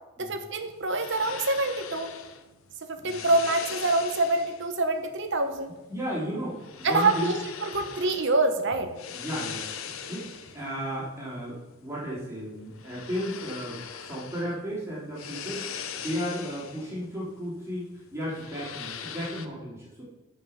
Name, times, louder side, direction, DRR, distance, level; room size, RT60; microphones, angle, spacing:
voice 1, 0.2-2.1 2.9-5.7 6.8-8.9, right 2 dB, 60° right, 7 dB, 1.0 m, -26 dB
sound 1, 0.6-19.5, left 7 dB, 75° left, 0.7 m, -42 dB
voice 2, 2.9-3.3 5.9-7.3 9.1-10.3 10.5-20.0, equal, 15° right, -8 dB, 3.3 m, -34 dB
10.0 x 5.7 x 5.7 m, 1.1 s
head